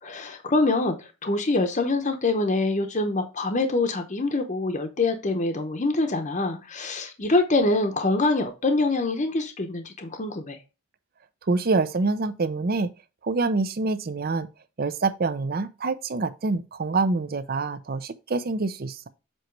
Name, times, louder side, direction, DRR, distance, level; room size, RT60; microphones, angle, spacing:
voice 1, 0.0-10.6, left 2 dB, 35° left, 0.8 m, -25 dB
voice 2, 11.4-12.9 13.2-14.5 14.8-19.1, right 3 dB, 45° right, 0.5 m, -26 dB
7.8 x 3.0 x 4.5 m
head